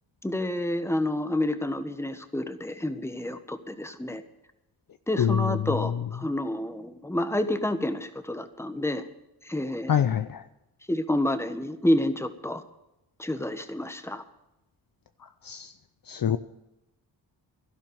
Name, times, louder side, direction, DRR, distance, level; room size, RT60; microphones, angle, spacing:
voice 1, 0.2-4.2 5.1-9.0 9.4-9.9 10.9-12.6 13.2-14.2, left 1 dB, 5° left, 9 dB, 1.3 m, -29 dB
voice 2, 5.2-6.0 9.9-10.4 15.4-15.7 16.1-16.4, left 8 dB, 45° left, 11 dB, 0.7 m, -25 dB
12.0 x 11.5 x 7.0 m, 0.90 s
supercardioid pair, 50°, 47 cm